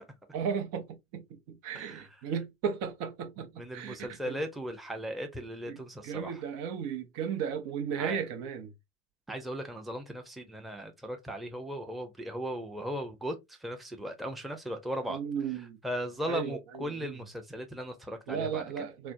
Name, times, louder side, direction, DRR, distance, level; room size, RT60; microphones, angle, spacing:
voice 1, 0.3-4.0 4.3-4.4 5.7-8.7 15.1-15.8 16.3-17.2 18.3-19.1, right 7 dB, 65° right, 0.8 m, -35 dB
voice 2, 1.7-2.1 3.5-6.4 8.0-8.2 9.3-15.2 15.8-18.8, equal, ahead, 0.6 m, -37 dB
3.2 x 2.0 x 2.5 m
hypercardioid pair, 70°, 32 cm